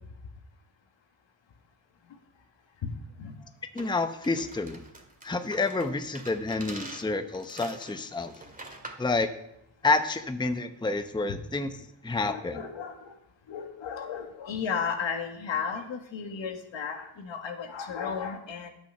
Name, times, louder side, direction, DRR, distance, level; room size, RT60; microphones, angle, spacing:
voice 1, 2.8-3.5 11.3-11.4 12.2-13.2 13.5-18.7, left 6 dB, 65° left, 5 dB, 1.7 m, -34 dB
voice 2, 3.7-4.8 5.2-8.3 9.0-9.3 9.8-12.6, left 3 dB, 10° left, 9 dB, 0.8 m, -29 dB
sound 1, 3.8-9.1, right 2 dB, 15° right, 2.0 m, -45 dB
10.0 x 6.4 x 5.6 m, 0.82 s
supercardioid pair, 55°, 48 cm